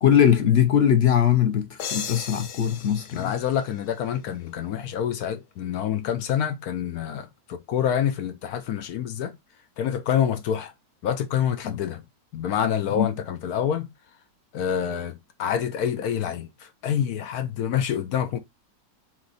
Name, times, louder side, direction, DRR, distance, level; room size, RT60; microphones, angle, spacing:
voice 1, 0.0-3.3 11.6-11.7 12.9-13.1, left 9 dB, 50° left, 0.8 m, -20 dB
sound 1, 1.8-4.5, left 7 dB, 85° left, 1.4 m, -37 dB
voice 2, 3.1-9.3 9.8-10.7 11.0-12.0 12.3-13.9 14.5-18.4, left 9 dB, 65° left, 1.1 m, -27 dB
4.2 x 3.0 x 4.0 m
omnidirectional pair, 1.8 m